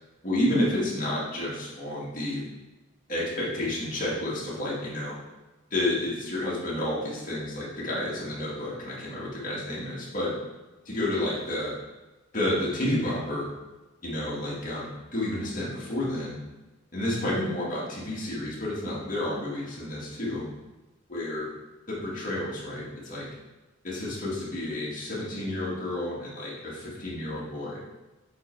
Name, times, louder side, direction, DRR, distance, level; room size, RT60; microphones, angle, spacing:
voice 1, 0.2-2.4 3.1-5.2 5.7-10.4 10.9-11.7 12.3-13.5 14.0-16.4 16.9-20.5 21.1-21.5 21.9-23.3 23.8-27.8, left 1 dB, 40° left, -7 dB, 2.2 m, -30 dB
8.0 x 3.4 x 4.7 m, 1.1 s
head